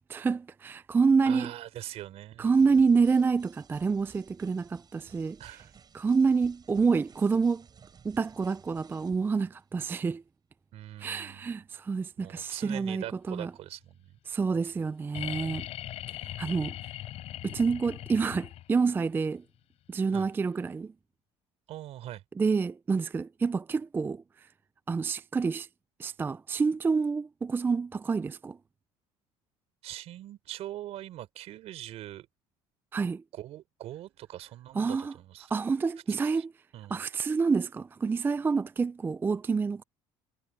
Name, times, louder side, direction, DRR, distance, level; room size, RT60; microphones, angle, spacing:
voice 1, 0.1-1.5 2.4-5.6 5.9-7.7 8.0-10.2 11.0-13.5 14.3-15.7 16.1-16.8 17.4-19.4 19.9-20.9 22.4-24.5 24.9-25.7 26.0-28.6 32.9-33.2 34.7-35.1 35.5-36.5 36.9-39.8, right 5 dB, 15° right, 0.3 m, -28 dB
voice 2, 1.2-2.5 5.4-5.7 10.7-11.5 12.2-14.2 20.1-20.3 21.7-22.2 29.8-32.3 33.3-35.5 36.3-36.4 36.7-37.0, right 13 dB, 60° right, 4.9 m, -42 dB
sound 1, 2.5-9.4, right 7 dB, 35° right, 7.7 m, -57 dB
sound 2, 15.1-18.9 20.6-20.7, left 14 dB, 60° left, 6.9 m, -39 dB
supercardioid pair, 100°, 12 cm